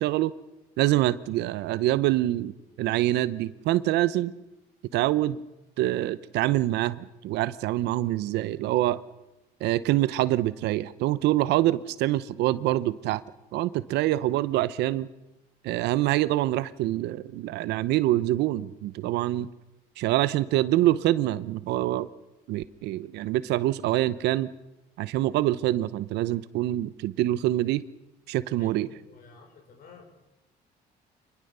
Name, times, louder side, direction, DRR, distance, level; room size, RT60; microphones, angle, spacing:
voice 1, 0.0-0.3 0.8-2.5 2.8-4.3 4.9-5.4 5.8-9.0 9.6-13.2 13.5-15.1 15.6-19.5 20.0-22.1 22.5-24.5 25.0-27.8 28.3-28.9, right 15 dB, 85° right, 16 dB, 0.8 m, -25 dB
voice 2, 28.6-30.1, left 5 dB, 60° left, 5 dB, 5.4 m, -50 dB
25.5 x 21.0 x 6.8 m, 0.98 s
cardioid pair, 110°, 17 cm